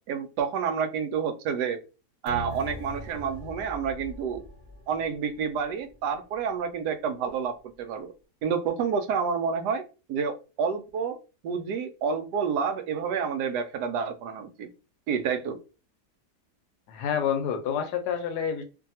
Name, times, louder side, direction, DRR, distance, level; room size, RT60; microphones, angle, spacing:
voice 1, 0.1-1.8 2.2-4.4 4.9-8.1 8.4-9.8 10.1-11.2 11.4-14.7 15.1-15.6, right 6 dB, 80° right, 8 dB, 1.1 m, -29 dB
sound 1, 2.3-5.2 5.5-5.6, right 1 dB, 35° right, 0.8 m, -39 dB
voice 2, 16.9-18.6, left 8 dB, 80° left, 7 dB, 1.1 m, -28 dB
2.7 x 2.5 x 2.7 m, 0.32 s
omnidirectional pair, 1.8 m